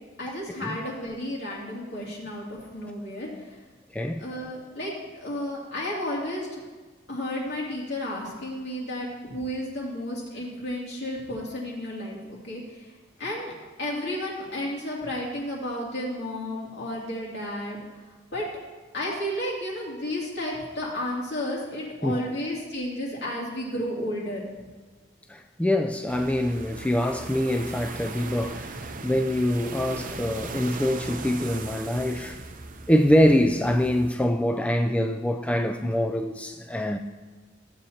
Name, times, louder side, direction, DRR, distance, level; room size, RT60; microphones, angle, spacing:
voice 1, 0.2-3.6 4.2-6.6 7.1-13.5 13.8-17.8 18.3-18.5 18.9-24.4, left 1 dB, 65° left, 2.6 m, -32 dB
voice 2, 25.3-32.4 32.9-37.0, left 1 dB, 5° left, 0.4 m, -24 dB
sound 1, 26.1-34.1, right 3 dB, 45° right, 0.6 m, -38 dB
15.0 x 7.9 x 2.8 m
head